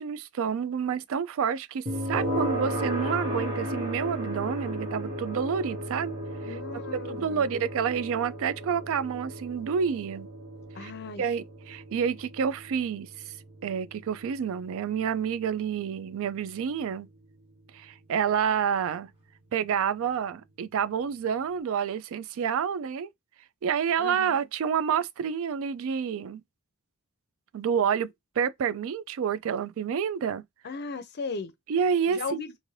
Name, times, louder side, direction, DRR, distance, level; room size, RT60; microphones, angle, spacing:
voice 1, 0.0-6.1 6.4-6.6 6.9-10.3 10.8-10.9 11.2-13.3 13.6-17.1 17.7-19.1 19.5-23.1 23.6-26.4 27.5-28.1 28.4-30.4 31.7-32.4, right 7 dB, 65° right, 0.3 m, -29 dB
sound 1, 1.9-16.8, equal, 25° right, 1.1 m, -35 dB
voice 2, 2.4-2.9 6.4-7.4 10.7-11.2 24.0-24.4 30.6-31.5 32.1-32.6, left 4 dB, 50° left, 0.5 m, -37 dB
2.6 x 2.6 x 3.1 m
head